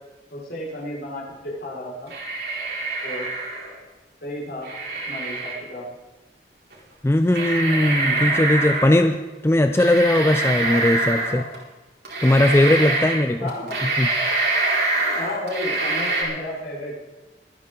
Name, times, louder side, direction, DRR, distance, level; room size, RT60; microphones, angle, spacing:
voice 1, 0.3-2.1 3.0-3.3 4.2-4.7 5.1-5.9 8.0-8.2 13.4-13.9 15.0-17.0, left 1 dB, 65° left, -5 dB, 5.2 m, -33 dB
sound 1, 2.1-3.7 4.6-5.5 6.7-6.8 7.3-9.0 9.7-11.6 12.0-13.2 13.5-16.2, right 2 dB, 70° right, 4.5 m, -25 dB
voice 2, 7.0-11.4 12.2-13.5 13.8-14.1, left 1 dB, 15° left, 8 dB, 0.4 m, -19 dB
24.0 x 9.8 x 3.9 m, 1.2 s
head